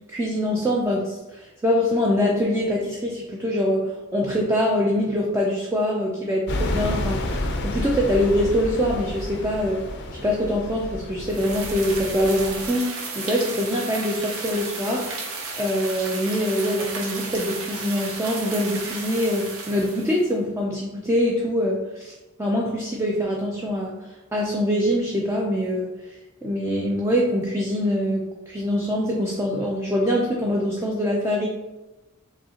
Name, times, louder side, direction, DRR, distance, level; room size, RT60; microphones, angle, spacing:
voice 1, 0.1-9.8 10.1-12.9 13.2-15.1 15.6-24.0 24.3-31.5, equal, 10° right, -2 dB, 0.4 m, -24 dB
sound 1, 6.5-12.7, left 1 dB, 55° left, 0.5 m, -30 dB
sound 2, 11.3-20.3, right 3 dB, 70° right, 0.8 m, -34 dB
4.8 x 2.8 x 2.8 m, 1.1 s
head